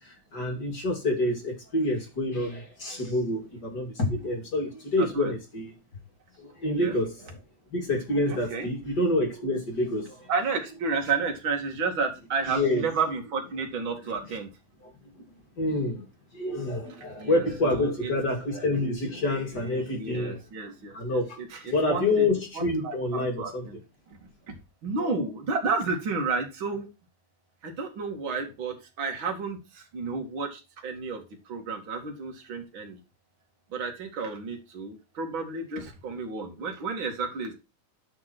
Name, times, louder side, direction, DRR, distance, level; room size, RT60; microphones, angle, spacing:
voice 1, 0.0-5.7 6.4-7.3 7.7-10.3 12.4-12.9 14.0-14.2 15.6-16.0 16.3-20.4 20.9-23.7, left 1 dB, 30° left, 2.5 m, -27 dB
voice 2, 5.0-5.3 6.8-6.9 8.3-8.7 10.3-14.5 17.2-18.1 19.9-22.3 22.6-23.8 24.5-24.6 24.8-26.9 27.6-33.0 33.7-37.5, right 4 dB, 35° right, 2.7 m, -31 dB
10.5 x 6.5 x 4.5 m
omnidirectional pair, 4.5 m